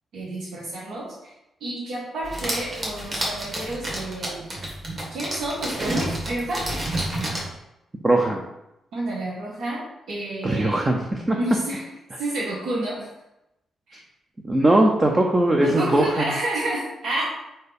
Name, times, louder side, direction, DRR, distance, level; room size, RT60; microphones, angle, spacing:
voice 1, 0.1-1.3 1.6-4.4 5.1-6.6 8.9-10.8 11.4-11.9 12.2-13.1 13.9-14.0 15.5-17.3, right 1 dB, 80° right, -6 dB, 1.6 m, -29 dB
sound 1, 2.2-7.5, right 1 dB, 30° right, 1.6 m, -30 dB
voice 2, 8.0-8.4 10.4-11.4 14.4-16.3, right 1 dB, 15° right, 1 dB, 0.5 m, -20 dB
4.6 x 4.4 x 5.2 m, 0.90 s
wide cardioid pair, 175°, 0 cm